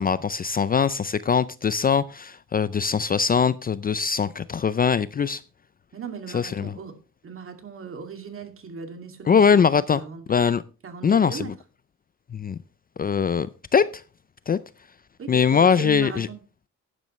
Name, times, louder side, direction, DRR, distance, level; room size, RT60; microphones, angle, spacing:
voice 1, 0.0-5.4 6.3-6.7 9.2-10.0 10.3-10.6 11.0-11.5 12.3-12.6 13.0-14.0 14.5-14.6 15.3-16.3, left 6 dB, 30° left, 0.4 m, -22 dB
voice 2, 5.9-6.9 7.2-9.4 9.9-10.2 10.8-11.5 15.2-16.4, right 6 dB, 45° right, 2.5 m, -37 dB
11.5 x 10.5 x 3.2 m
cardioid pair, 90°, 30 cm